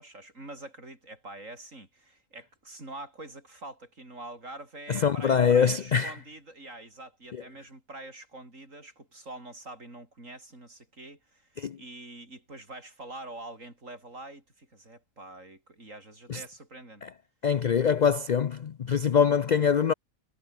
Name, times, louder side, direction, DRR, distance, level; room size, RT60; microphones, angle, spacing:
voice 1, 0.0-17.0, right 2 dB, 65° right, 6.7 m, -45 dB
voice 2, 4.9-6.1 11.6-11.8 16.3-16.4 17.0-17.1 17.4-19.9, left 7 dB, 65° left, 0.4 m, -24 dB
omnidirectional pair, 1.5 m